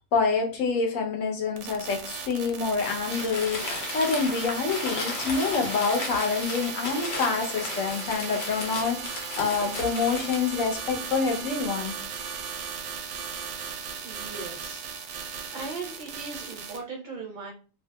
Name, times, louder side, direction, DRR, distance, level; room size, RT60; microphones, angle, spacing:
voice 1, 0.1-11.9, left 4 dB, 80° left, 2 dB, 1.1 m, -27 dB
sound 1, 1.6-16.8, right 6 dB, 90° right, 1.0 m, -37 dB
Crumpling crinkling, 3.0-10.6, left 3 dB, 60° left, 0.9 m, -35 dB
voice 2, 14.0-14.8 15.5-17.5, right 4 dB, 45° right, -1 dB, 0.7 m, -38 dB
2.8 x 2.5 x 2.2 m, 0.35 s
omnidirectional pair, 1.4 m